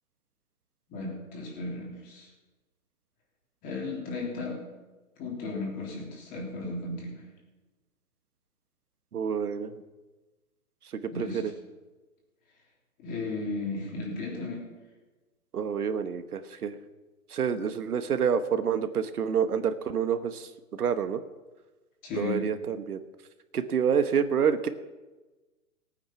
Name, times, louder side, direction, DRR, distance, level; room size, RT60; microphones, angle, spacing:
voice 1, 0.9-2.3 3.6-4.6 5.2-7.2 11.1-11.4 13.0-14.6 22.0-22.5, left 3 dB, 20° left, -2 dB, 3.5 m, -35 dB
voice 2, 9.1-9.7 11.2-11.5 15.5-16.8 17.3-21.2 22.1-23.0 23.5-24.7, right 7 dB, 90° right, 10 dB, 1.3 m, -28 dB
18.5 x 9.0 x 5.8 m, 1.2 s
hypercardioid pair, 165°, 44 cm